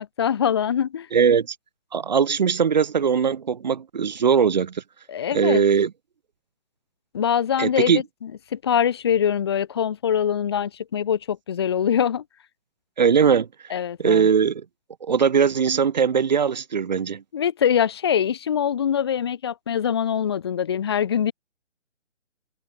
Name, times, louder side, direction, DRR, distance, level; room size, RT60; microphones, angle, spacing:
voice 1, 0.0-1.1 5.1-5.6 7.1-12.2 13.7-14.3 17.3-21.3, left 8 dB, 20° left, 1.0 m, -23 dB
voice 2, 1.1-1.6 1.9-4.8 5.3-5.9 7.6-8.0 13.0-13.5 14.0-14.6 15.0-17.2, right 6 dB, 40° right, 1.1 m, -20 dB
hypercardioid pair, 170°, 34 cm